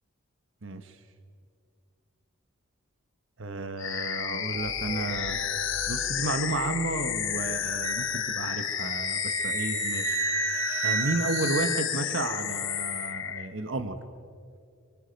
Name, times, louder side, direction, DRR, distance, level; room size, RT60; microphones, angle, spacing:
voice 1, 0.6-1.0 3.4-5.4 5.9-10.2 10.8-14.0, right 3 dB, 65° right, 9 dB, 1.1 m, -32 dB
sound 1, 3.8-13.5, left 9 dB, 65° left, 1.0 m, -32 dB
sound 2, 4.5-8.3, equal, 85° right, 5.9 m, -42 dB
Wind instrument woodwind instrument, 7.8-12.4, right 5 dB, 35° right, 1.8 m, -32 dB
26.0 x 24.0 x 5.2 m, 2.3 s
head